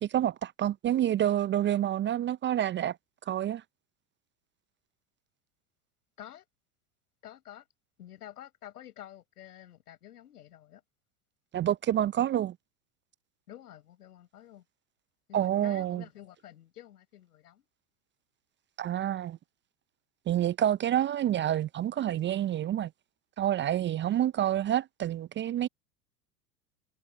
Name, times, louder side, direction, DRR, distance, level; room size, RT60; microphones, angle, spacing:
voice 1, 0.0-3.0 3.3-3.6 11.5-12.5 15.3-16.0 18.8-19.4 20.3-22.9 23.4-25.7, right 11 dB, 25° right, 0.6 m, -28 dB
voice 2, 7.2-7.6 8.0-10.8 13.5-14.6 15.3-17.6, left 12 dB, 75° left, 6.3 m, -49 dB
figure-of-eight pair, 85°, 47 cm